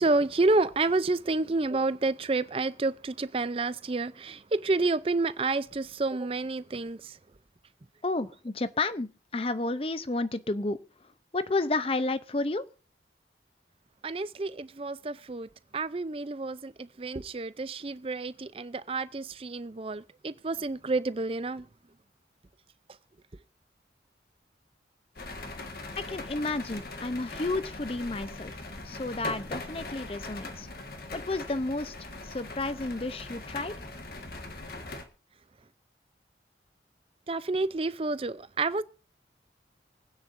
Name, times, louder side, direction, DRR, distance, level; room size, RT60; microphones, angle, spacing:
voice 1, 0.0-7.2 14.0-21.7 37.3-38.8, right 3 dB, 30° right, 0.5 m, -29 dB
voice 2, 8.0-10.8 11.3-12.6 26.1-28.6 28.8-30.7 31.1-33.7, left 2 dB, 30° left, 0.6 m, -31 dB
sound 1, 25.2-35.0, left 2 dB, 55° left, 1.6 m, -41 dB
25.0 x 9.4 x 2.6 m
head